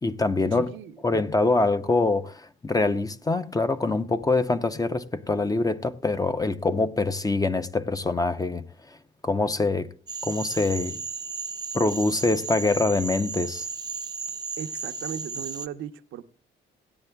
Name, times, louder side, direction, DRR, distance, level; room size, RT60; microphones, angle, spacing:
voice 1, 0.0-0.7 1.0-8.6 9.2-9.9 10.2-11.0 11.7-13.7, left 3 dB, 20° left, 0.6 m, -24 dB
voice 2, 0.5-1.0 14.6-16.2, right 9 dB, 80° right, 0.7 m, -37 dB
Cricket / Frog, 10.1-15.7, right 4 dB, 20° right, 0.6 m, -34 dB
17.5 x 9.8 x 2.2 m
cardioid pair, 90°, 20 cm